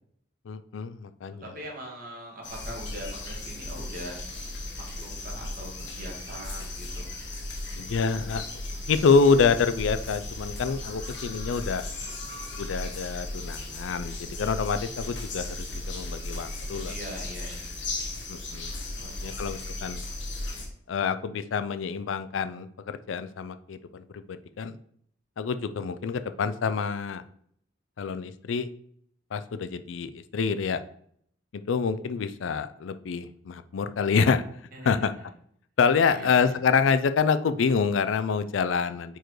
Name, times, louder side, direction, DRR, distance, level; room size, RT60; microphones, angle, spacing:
voice 1, 0.5-1.4 7.8-8.4 8.9-11.8 12.6-16.9 18.3-18.7 19.0-20.0 20.9-24.8 25.4-27.2 28.0-28.7 29.3-30.8 31.5-34.4 34.8-35.1 35.8-39.2, left 5 dB, 85° left, 12 dB, 0.4 m, -27 dB
voice 2, 1.4-4.2 4.7-7.1 16.8-17.7 19.0-19.5 34.7-35.3 36.1-36.5, right 1 dB, 45° right, -1 dB, 1.7 m, -42 dB
sound 1, 2.4-20.6, left 2 dB, 70° left, 1.3 m, -36 dB
4.6 x 4.6 x 4.6 m, 0.66 s
head